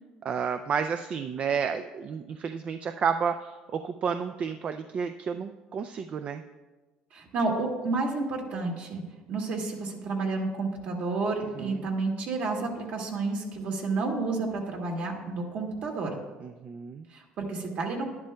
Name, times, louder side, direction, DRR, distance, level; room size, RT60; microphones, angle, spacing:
voice 1, 0.2-3.4 3.7-6.4 11.6-11.8 16.4-17.0, right 6 dB, 40° right, 9 dB, 0.3 m, -31 dB
voice 2, 7.1-9.0 9.3-16.2 17.1-18.1, right 3 dB, 60° right, 0 dB, 1.8 m, -30 dB
11.0 x 10.5 x 2.2 m, 1.2 s
supercardioid pair, 100°, 3 cm